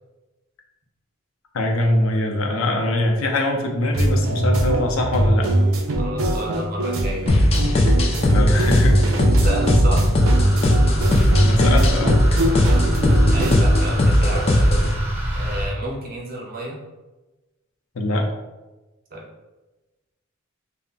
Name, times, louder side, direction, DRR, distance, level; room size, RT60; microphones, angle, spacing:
voice 1, 1.5-5.5 8.3-9.0 11.4-12.3 17.9-18.3, left 1 dB, 85° left, 1 dB, 0.5 m, -22 dB
sound 1, 3.9-13.5, right 1 dB, 90° right, 0.4 m, -22 dB
voice 2, 6.0-7.4 9.4-10.0 12.7-12.9 13.3-14.6 15.3-16.8 19.1-19.3, right 1 dB, 45° right, -2 dB, 0.6 m, -30 dB
sound 2, 7.3-14.9, left 1 dB, 30° left, 0.3 m, -18 dB
sound 3, 10.2-15.7, equal, 10° right, 0.6 m, -27 dB
2.2 x 2.1 x 3.8 m, 1.1 s
head